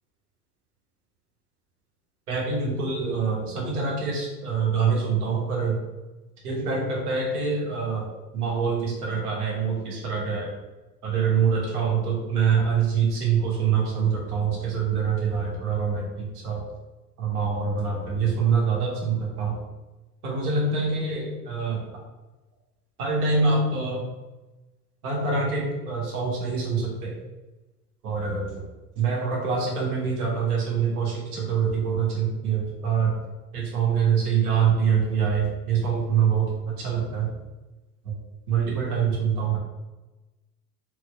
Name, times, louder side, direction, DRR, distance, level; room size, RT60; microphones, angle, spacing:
voice 1, 2.3-5.8 6.4-8.1 8.3-10.5 11.0-16.7 17.2-19.6 20.2-22.0 23.0-24.0 25.0-27.2 28.0-28.7 29.0-33.1 33.5-37.3 38.0-38.1 38.5-39.6, right 5 dB, 65° right, -3 dB, 1.5 m, -25 dB
4.6 x 4.0 x 2.3 m, 1.1 s
figure-of-eight pair, 80°, 48 cm